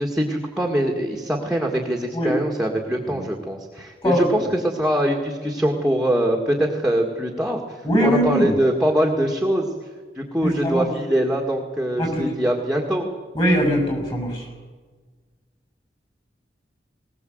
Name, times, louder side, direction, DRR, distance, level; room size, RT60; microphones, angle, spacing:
voice 1, 0.0-9.7 10.2-13.1, right 1 dB, 5° right, 1 dB, 1.9 m, -23 dB
voice 2, 7.8-8.6 10.4-10.9 12.0-12.2 13.3-14.5, equal, 30° left, 2 dB, 6.9 m, -21 dB
20.0 x 20.0 x 7.9 m, 1.4 s
head